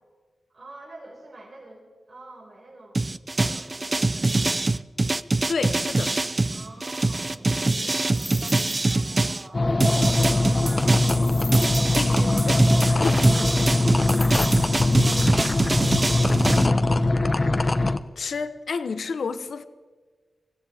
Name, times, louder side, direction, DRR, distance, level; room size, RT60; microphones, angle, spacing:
voice 1, 0.5-3.0 3.4-4.5 6.5-9.8 10.2-11.1 13.4-17.0, right 2 dB, 60° right, 5.2 m, -47 dB
sound 1, 2.9-9.4 9.8-16.7, right 2 dB, 30° right, 0.5 m, -24 dB
voice 2, 5.5-6.2 11.5-11.6 11.9-13.2 18.2-19.7, left 5 dB, 75° left, 0.8 m, -31 dB
sound 2, 8.1-9.1 9.3-9.4 11.2-12.2 14.1-15.4, left 1 dB, 10° left, 1.8 m, -38 dB
sound 3, 9.5-18.0, left 2 dB, 35° left, 0.7 m, -22 dB
24.5 x 16.5 x 3.5 m
wide cardioid pair, 85°, 0 cm